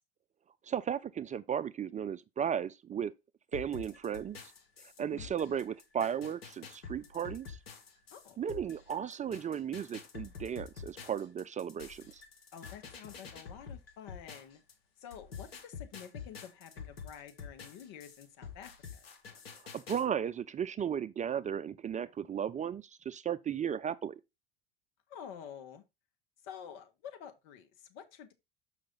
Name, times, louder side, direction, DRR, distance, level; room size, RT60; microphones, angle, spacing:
voice 1, 0.6-3.1 3.5-4.4 5.0-7.6 8.4-12.2 19.7-24.2, right 8 dB, 25° right, 0.5 m, -35 dB
sound 1, 3.5-14.7 15.1-20.0, left 6 dB, 85° left, 1.8 m, -48 dB
voice 2, 5.0-5.3 8.1-8.4 12.5-14.6 15.0-19.1 25.1-25.8 26.4-28.3, left 8 dB, 65° left, 1.5 m, -49 dB
6.6 x 5.7 x 3.9 m
hypercardioid pair, 75°, 29 cm